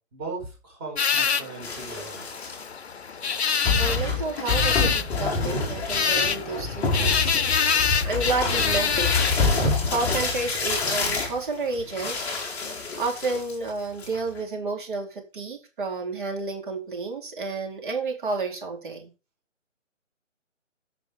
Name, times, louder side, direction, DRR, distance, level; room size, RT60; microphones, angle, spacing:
voice 1, 0.1-2.4, right 3 dB, 20° right, -1 dB, 4.9 m, -38 dB
sound 1, 1.0-9.7, left 6 dB, 55° left, 0.9 m, -26 dB
sound 2, 1.6-2.6 3.3-3.4 3.6-13.7 14.0-14.4, left 3 dB, 5° left, 1.4 m, -27 dB
voice 2, 3.8-7.4 7.8-9.2 9.5-19.1, right 3 dB, 40° right, 2 dB, 4.1 m, -31 dB
14.0 x 5.6 x 5.1 m, 0.32 s
figure-of-eight pair, 160°, 39 cm